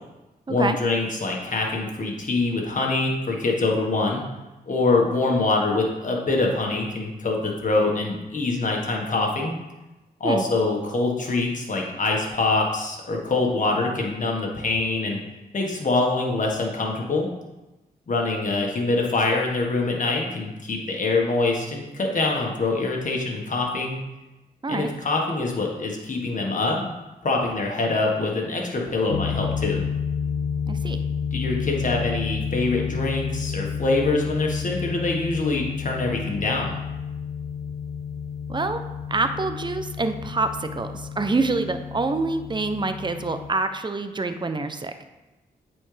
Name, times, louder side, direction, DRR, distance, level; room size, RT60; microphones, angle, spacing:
voice 1, 0.5-4.2 4.7-9.6 10.2-15.2 15.5-17.3 18.1-24.0 24.7-26.9 27.2-29.8 31.3-36.7, left 3 dB, 50° left, 0 dB, 1.6 m, -24 dB
sound 1, 29.1-43.5, left 6 dB, 70° left, 0.5 m, -30 dB
voice 2, 30.7-31.0 38.5-38.8 39.1-44.9, right 3 dB, 30° right, 8 dB, 0.7 m, -26 dB
8.6 x 4.3 x 3.4 m, 1.1 s
cardioid pair, 60°, 17 cm